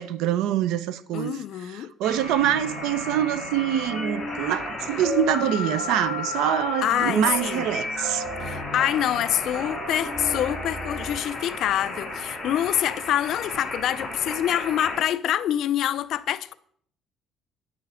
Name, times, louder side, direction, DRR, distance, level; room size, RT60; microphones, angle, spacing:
voice 1, 0.0-8.2, right 10 dB, 90° right, 0.6 m, -25 dB
voice 2, 1.1-1.9 6.8-7.7 8.4-16.5, left 11 dB, 60° left, 0.5 m, -26 dB
sound 1, 2.0-15.0, left 3 dB, 5° left, 3.3 m, -33 dB
sound 2, 2.4-10.5, right 2 dB, 70° right, 2.2 m, -38 dB
9.8 x 7.7 x 5.0 m
cardioid pair, 155°, 0 cm